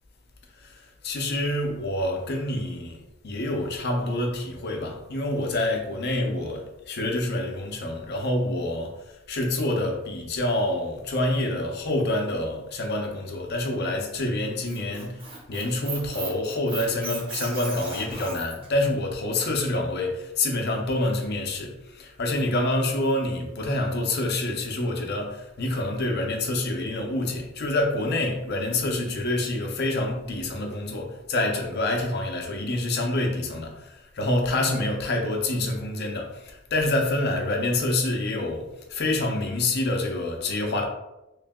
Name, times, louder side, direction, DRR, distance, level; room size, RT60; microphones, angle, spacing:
voice 1, 0.6-40.9, left 1 dB, 55° left, 0.7 m, -27 dB
Squeak, 14.4-18.7, right 3 dB, 30° right, 0.8 m, -37 dB
3.2 x 2.8 x 3.5 m
head